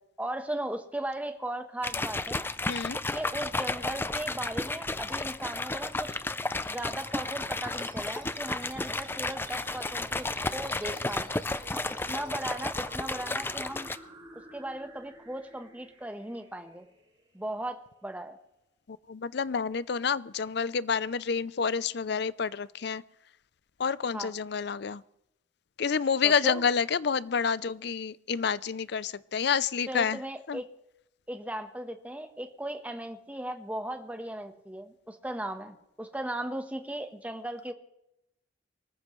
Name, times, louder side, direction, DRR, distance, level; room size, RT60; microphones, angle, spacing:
voice 1, 0.2-2.5 3.1-6.2 6.7-11.3 11.7-13.9 14.5-16.9 17.3-18.4 24.1-24.3 26.2-26.6 29.9-30.7 31.3-37.7, right 1 dB, 10° right, 6 dB, 1.2 m, -37 dB
sound 1, 1.8-14.0, left 2 dB, 10° left, 0.5 m, -33 dB
voice 2, 2.7-3.0 18.9-23.0 23.8-25.0 25.8-30.2 30.5-30.6, left 6 dB, 65° left, 18 dB, 0.5 m, -29 dB
sound 2, 6.9-17.9, right 2 dB, 30° right, 4.9 m, -50 dB
24.5 x 14.5 x 3.2 m, 0.83 s
head